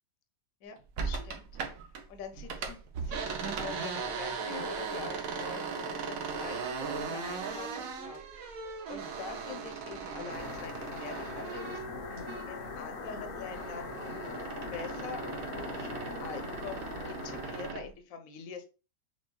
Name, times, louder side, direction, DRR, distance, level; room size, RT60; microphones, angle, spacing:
voice 1, 0.6-1.5 2.1-8.6 8.9-11.8 12.5-13.9 14.7-15.9 16.2-18.6, left 6 dB, 60° left, 6 dB, 1.1 m, -44 dB
sound 1, 1.0-2.0 2.3-12.7 13.0-17.9, right 5 dB, 60° right, 1.0 m, -38 dB
sound 2, 5.6-11.5, right 4 dB, 75° right, 1.5 m, -54 dB
sound 3, 10.3-17.7, left 4 dB, 80° left, 0.5 m, -41 dB
6.4 x 3.0 x 2.3 m, 0.32 s
omnidirectional pair, 1.9 m